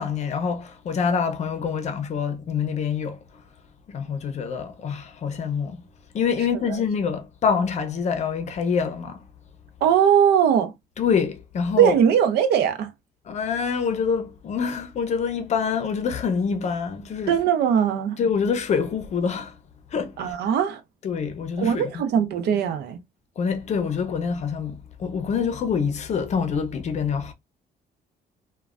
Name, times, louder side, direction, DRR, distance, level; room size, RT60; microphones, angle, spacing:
voice 1, 0.0-3.2 3.9-5.8 6.1-9.2 11.0-12.0 13.2-17.4 18.2-19.6 19.9-20.4 21.0-22.3 23.4-27.3, left 6 dB, 40° left, 0.6 m, -26 dB
voice 2, 9.8-10.7 11.8-12.9 17.3-18.2 20.2-20.8 21.6-23.0, right 8 dB, 85° right, 0.6 m, -20 dB
3.1 x 2.2 x 2.4 m
cardioid pair, 140°, 17 cm